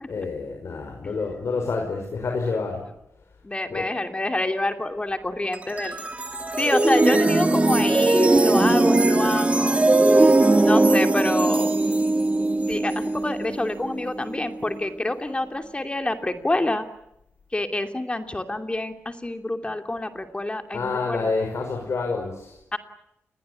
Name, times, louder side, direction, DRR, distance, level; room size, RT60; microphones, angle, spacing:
voice 1, 0.1-2.8 3.7-3.9 20.7-22.6, left 4 dB, 70° left, 2 dB, 5.6 m, -28 dB
voice 2, 3.4-6.0 6.6-9.8 10.6-11.7 12.7-16.9 17.5-21.3 22.7-22.8, left 2 dB, 20° left, 6 dB, 2.8 m, -27 dB
sound 1, 5.5-14.8, right 2 dB, 30° right, 2.9 m, -20 dB
29.0 x 21.5 x 8.4 m, 0.84 s
cardioid pair, 80°, 5 cm